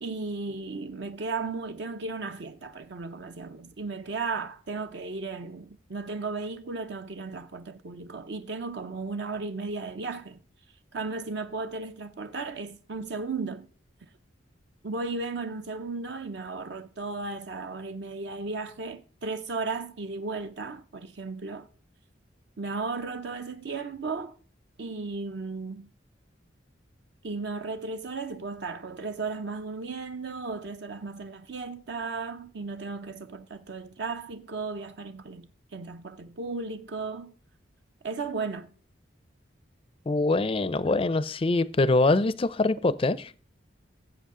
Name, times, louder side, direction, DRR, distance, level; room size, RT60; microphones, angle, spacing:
voice 1, 0.0-10.4 10.9-13.7 14.8-21.7 22.6-24.3 24.8-25.9 27.2-37.3 38.0-38.7, right 3 dB, 60° right, 0.6 m, -35 dB
voice 2, 40.1-43.3, left 2 dB, 30° left, 0.4 m, -24 dB
16.5 x 7.6 x 3.7 m
head